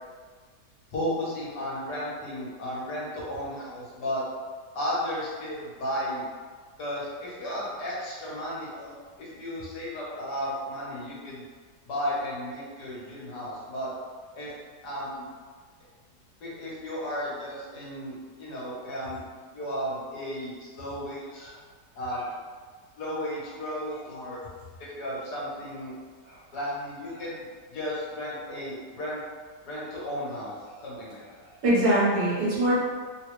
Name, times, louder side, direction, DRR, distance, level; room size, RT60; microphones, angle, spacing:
voice 1, 0.9-4.2 4.7-6.3 6.8-11.5 11.8-13.9 14.3-14.5 14.8-15.2 16.4-19.2 19.5-21.5 21.9-22.2 23.0-24.4 24.8-25.9 26.5-29.2 29.6-30.5 30.8-31.4, equal, 70° left, -7 dB, 1.5 m, -34 dB
voice 2, 31.6-32.8, right 1 dB, 60° right, -9 dB, 1.5 m, -23 dB
3.5 x 2.3 x 3.0 m, 1.5 s
omnidirectional pair, 1.9 m